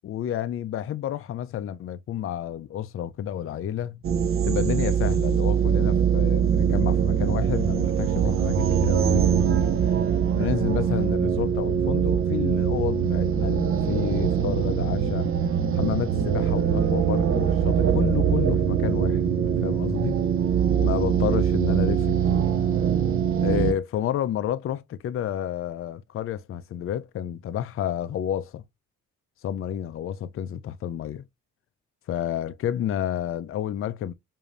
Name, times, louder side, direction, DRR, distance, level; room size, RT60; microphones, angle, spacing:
voice 1, 0.0-4.0 4.4-9.2 9.5-9.7 10.4-15.3 15.7-20.2 20.8-22.4 23.4-28.6 29.4-31.2 32.1-34.1, left 10 dB, 45° left, 0.4 m, -30 dB
sound 1, 4.0-23.7, right 8 dB, 45° right, 0.6 m, -23 dB
5.0 x 2.7 x 2.4 m
cardioid pair, 90°, 30 cm